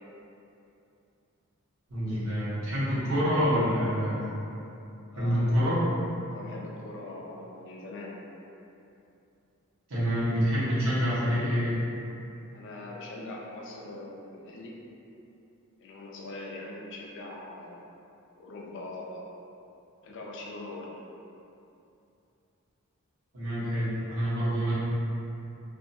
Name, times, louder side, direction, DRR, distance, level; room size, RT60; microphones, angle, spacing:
voice 1, 1.9-4.3 5.2-5.8 9.9-11.7 23.3-24.7, equal, 75° right, -11 dB, 1.0 m, -27 dB
voice 2, 5.1-5.7 6.3-8.2 12.5-14.7 15.8-17.9 18.4-19.2 20.0-20.9, left 2 dB, 60° left, -2 dB, 0.4 m, -42 dB
2.5 x 2.2 x 2.7 m, 2.8 s
head